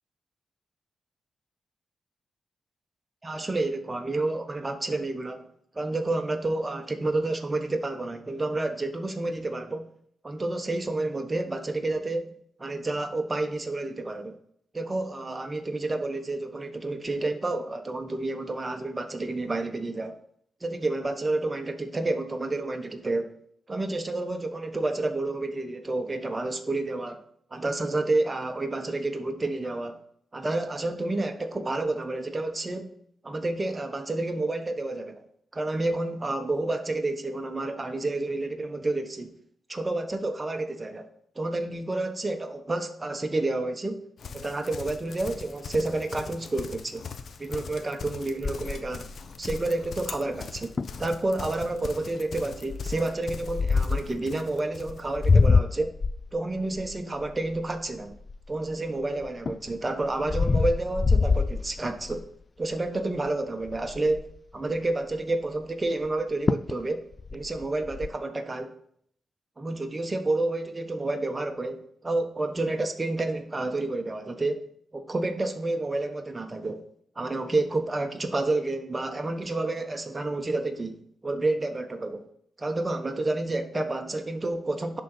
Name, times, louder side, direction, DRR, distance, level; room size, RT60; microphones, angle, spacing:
voice 1, 3.2-5.5 5.7-9.9 10.2-14.4 14.7-20.2 20.6-23.3 23.7-27.2 27.5-30.0 30.3-32.9 33.2-35.2 35.5-39.3 39.7-41.1 41.3-44.0 44.3-47.1 47.4-49.1 49.4-55.9 56.3-58.1 58.5-62.2 62.6-64.3 64.5-67.0 67.3-68.7 69.6-74.6 74.9-76.8 77.2-82.2 82.6-85.0, right 2 dB, 30° right, 5 dB, 1.2 m, -29 dB
Livestock farm animals working animals, 44.2-55.4, left 5 dB, 65° left, 0.8 m, -41 dB
sound 1, 48.4-49.9 50.4-50.5 50.8-51.0 51.6-51.9 52.7-54.2 54.8-58.7 59.2-62.3 62.7-63.0 63.3-63.4 63.6-64.4 66.1-66.2 66.5-66.8 67.1-68.1, left 4 dB, 45° left, 0.4 m, -25 dB
10.5 x 4.0 x 5.7 m, 0.66 s
supercardioid pair, 50°, 0 cm